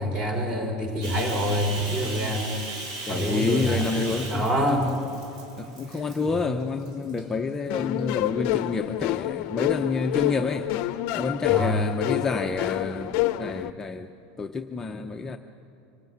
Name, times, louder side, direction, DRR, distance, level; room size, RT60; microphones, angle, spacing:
voice 1, 0.0-2.5 3.1-4.9 5.9-6.4 11.5-11.9, equal, 25° right, 4 dB, 4.1 m, -27 dB
Bathtub (filling or washing), 1.0-6.4 6.8-7.2 7.8-8.6, right 2 dB, 90° right, 6.6 m, -37 dB
voice 2, 3.1-5.1 5.6-10.7 11.1-14.1 14.4-15.4, left 4 dB, 15° left, 4 dB, 0.7 m, -29 dB
sound 1, 7.7-13.7, left 15 dB, 55° left, 0.6 m, -28 dB
25.0 x 18.0 x 9.3 m, 2.8 s
supercardioid pair, 145°, 3 cm